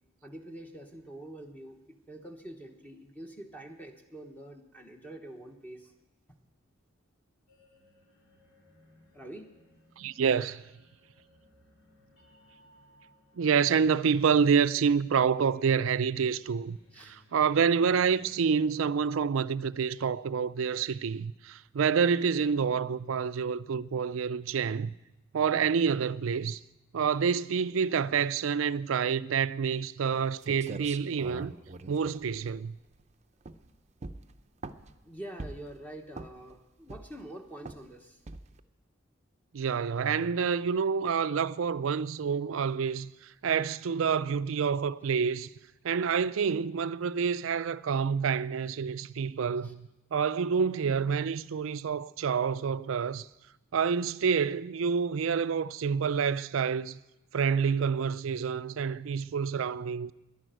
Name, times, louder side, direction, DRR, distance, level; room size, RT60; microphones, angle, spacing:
voice 1, 0.2-1.8 2.1-5.9 9.1-9.6 16.9-17.2 35.0-38.2 49.6-49.7, right 1 dB, 10° left, 1.1 m, -45 dB
sound 1, 7.5-20.5, left 1 dB, 85° left, 4.9 m, -63 dB
voice 2, 10.0-10.7 13.4-24.9 25.3-26.6 26.9-31.5 31.9-32.7 39.5-45.5 45.8-53.3 53.7-57.0 57.3-60.1, right 6 dB, 85° right, 0.4 m, -28 dB
sound 2, 30.1-30.2 30.4-33.0 33.4-33.7 34.0-35.0 35.4-35.8 36.1-36.5 36.9-37.3 37.7-37.9 38.3-38.6, right 3 dB, 35° right, 0.6 m, -42 dB
11.0 x 11.0 x 9.1 m
head